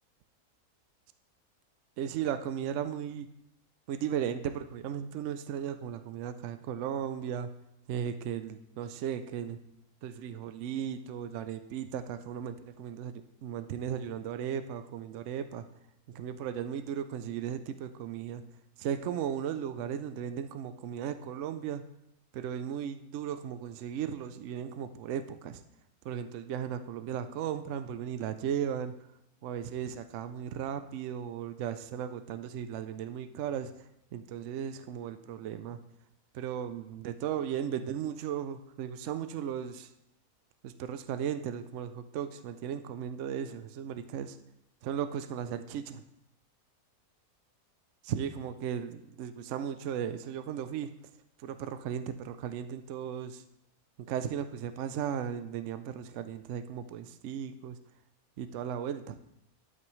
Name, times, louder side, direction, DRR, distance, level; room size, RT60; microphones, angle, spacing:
voice 1, 2.0-3.3 3.9-7.5 7.9-9.6 10.0-15.6 16.1-18.4 18.8-21.8 22.3-25.6 26.0-28.9 29.4-33.7 34.1-35.8 36.3-39.9 40.6-44.4 44.8-46.0 48.1-50.9 51.4-53.4 54.1-57.8 58.4-59.2, right 9 dB, 65° right, 10 dB, 0.8 m, -36 dB
12.5 x 5.9 x 3.1 m, 0.81 s
omnidirectional pair, 1.6 m